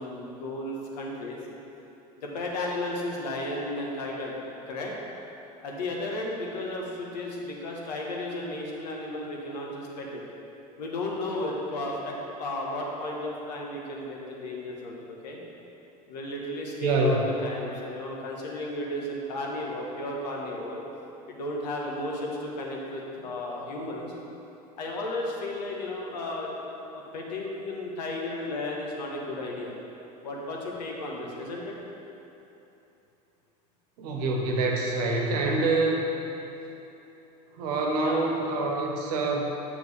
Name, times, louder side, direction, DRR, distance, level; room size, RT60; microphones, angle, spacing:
voice 1, 0.0-1.4 2.2-4.4 4.7-4.9 5.6-10.2 10.8-15.4 16.1-20.8 21.3-24.1 24.8-29.7 30.2-31.7 38.0-38.3, left 1 dB, 80° left, -2 dB, 1.3 m, -34 dB
voice 2, 16.8-17.3 34.0-36.1 37.5-39.4, right 3 dB, 70° right, 0 dB, 1.2 m, -26 dB
7.5 x 6.4 x 3.5 m, 3.0 s
hypercardioid pair, 85°, 21 cm